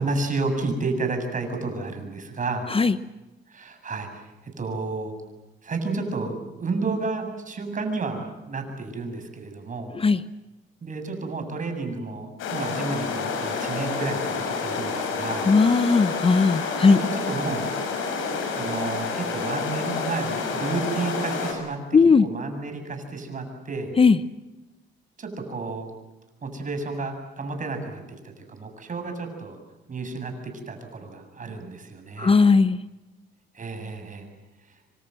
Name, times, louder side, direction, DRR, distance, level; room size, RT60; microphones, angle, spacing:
voice 1, 0.0-2.7 3.5-4.3 4.6-5.1 5.6-9.9 10.8-15.5 16.8-17.7 18.5-21.8 22.2-23.9 25.2-25.9 26.4-29.6 29.9-32.4 33.5-34.3, right 3 dB, 40° right, 6 dB, 7.4 m, -31 dB
sound 1, 12.4-21.5, left 4 dB, 85° left, 6.9 m, -29 dB
voice 2, 15.5-17.0 21.9-22.3 24.0-24.2 32.2-32.8, left 4 dB, 30° left, 13 dB, 0.9 m, -17 dB
27.0 x 25.5 x 7.8 m, 1.1 s
cardioid pair, 90°, 20 cm